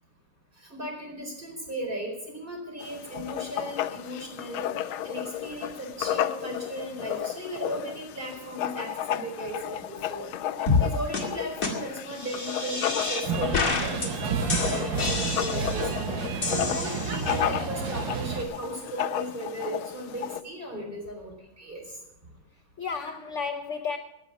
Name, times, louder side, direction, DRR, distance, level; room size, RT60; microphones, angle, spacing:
voice 1, 0.7-4.6 5.0-10.3 10.8-16.1 16.5-21.8, right 1 dB, 25° right, 1 dB, 4.8 m, -36 dB
Writing, 2.8-20.4, left 11 dB, 80° left, 1.5 m, -33 dB
sound 1, 10.7-10.9 11.1-11.2 11.6-11.7 12.2-13.2 13.5-14.1 14.5-15.9 16.4-17.4, left 4 dB, 40° left, 2.6 m, -28 dB
sound 2, 13.2-18.4, right 6 dB, 65° right, 2.0 m, -30 dB
voice 2, 16.1-16.6 18.3-18.4 20.7-20.9 22.8-24.0, left 5 dB, 60° left, 7 dB, 0.8 m, -34 dB
17.0 x 10.5 x 6.0 m, 0.87 s
omnidirectional pair, 2.2 m